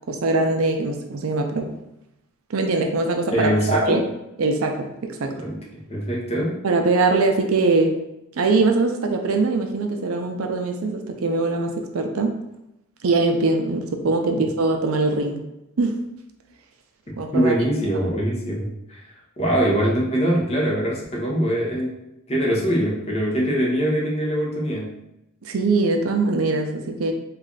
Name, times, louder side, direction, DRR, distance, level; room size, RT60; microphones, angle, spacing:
voice 1, 0.1-1.7 2.5-4.1 4.4-5.4 6.6-8.0 8.4-12.4 13.0-15.5 15.8-16.0 17.2-17.5 25.4-27.1, right 3 dB, 75° right, 4 dB, 0.5 m, -22 dB
voice 2, 3.3-4.1 5.3-6.6 14.2-14.3 17.3-19.0 19.4-22.0 22.3-24.9, equal, 30° left, -3 dB, 0.8 m, -23 dB
3.2 x 2.5 x 3.8 m, 0.88 s
head